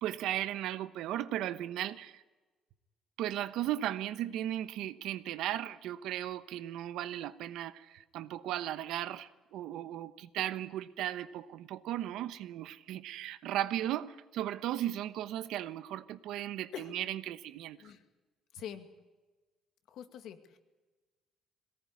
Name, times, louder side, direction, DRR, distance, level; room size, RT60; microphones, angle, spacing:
voice 1, 0.0-2.2 3.2-17.8, right 12 dB, 80° right, 1.1 m, -36 dB
voice 2, 18.5-18.9 19.9-20.6, left 9 dB, 65° left, 2.3 m, -44 dB
22.0 x 18.5 x 9.9 m
cardioid pair, 155°, 0 cm